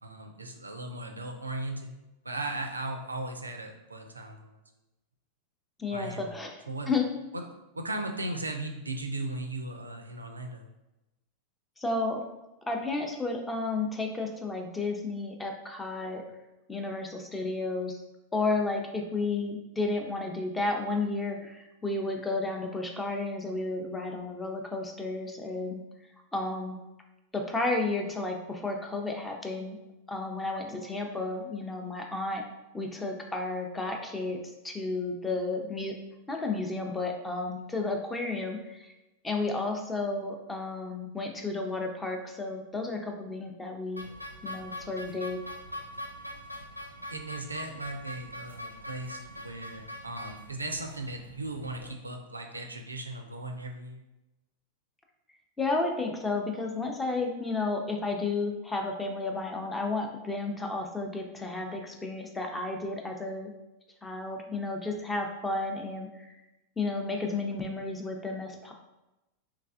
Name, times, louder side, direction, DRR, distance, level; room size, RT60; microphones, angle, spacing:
voice 1, 0.0-2.0 2.2-4.5 5.9-6.3 6.7-6.9 7.3-7.4 7.7-10.7 47.1-54.0, right 2 dB, 80° right, 5 dB, 0.3 m, -37 dB
voice 2, 5.8-7.0 11.8-12.2 12.7-16.2 16.7-18.0 18.3-25.8 26.3-26.7 27.3-29.8 30.1-32.4 32.7-34.4 34.6-36.0 36.3-38.9 39.2-44.0 44.4-45.4 55.6-63.5 64.0-66.3 66.8-68.7, left 3 dB, 10° left, 2 dB, 0.5 m, -32 dB
sound 1, 44.0-51.9, left 1 dB, 90° left, 0.3 m, -43 dB
3.3 x 3.2 x 2.4 m, 0.98 s
figure-of-eight pair, 90°, 0 cm